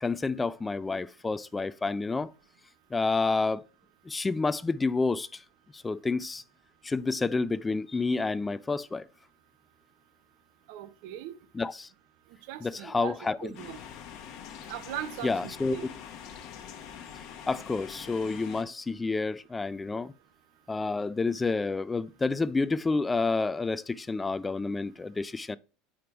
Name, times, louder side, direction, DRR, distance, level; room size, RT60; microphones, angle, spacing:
voice 1, 0.0-2.3 2.9-3.6 4.1-5.4 5.7-6.4 6.8-9.1 11.5-11.9 12.6-13.5 15.2-15.8 17.5-20.1 20.7-25.6, left 3 dB, 15° left, 0.3 m, -29 dB
voice 2, 10.7-11.3 12.5-13.2 13.4-13.8 14.7-15.9, right 12 dB, 70° right, 0.7 m, -39 dB
sound 1, 13.5-18.6, left 8 dB, 60° left, 1.0 m, -44 dB
5.0 x 4.5 x 5.2 m
supercardioid pair, 110°, 0 cm